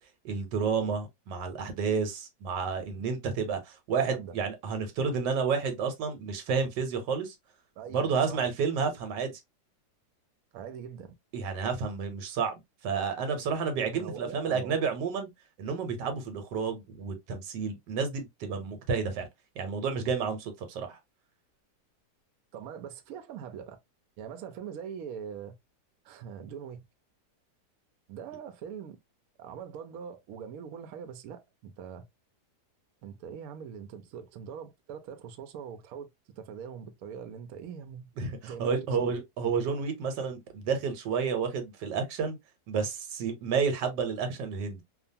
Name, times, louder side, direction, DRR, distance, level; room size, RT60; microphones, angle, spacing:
voice 1, 0.2-7.3 7.9-9.3 11.3-15.3 15.6-19.3 19.6-21.0 38.2-42.4 42.7-44.8, right 5 dB, 90° right, 1.4 m, -30 dB
voice 2, 7.8-8.5 10.5-11.1 13.9-14.9 22.5-23.8 24.2-25.5 26.0-26.8 28.1-29.0 29.4-32.0 33.0-38.1 38.4-39.2, right 7 dB, 70° right, 0.9 m, -42 dB
2.8 x 2.3 x 2.6 m
omnidirectional pair, 1.8 m